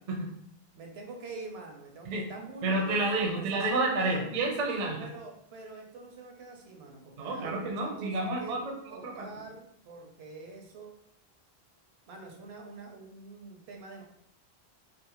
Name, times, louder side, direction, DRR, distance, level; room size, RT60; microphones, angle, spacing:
voice 1, 0.7-4.3 5.0-8.6 8.9-10.9 12.1-14.0, right 3 dB, 80° right, 1 dB, 0.8 m, -45 dB
voice 2, 2.6-5.1 7.2-9.3, right 2 dB, 50° right, 0 dB, 0.5 m, -30 dB
2.6 x 2.0 x 2.8 m, 0.70 s
omnidirectional pair, 1.1 m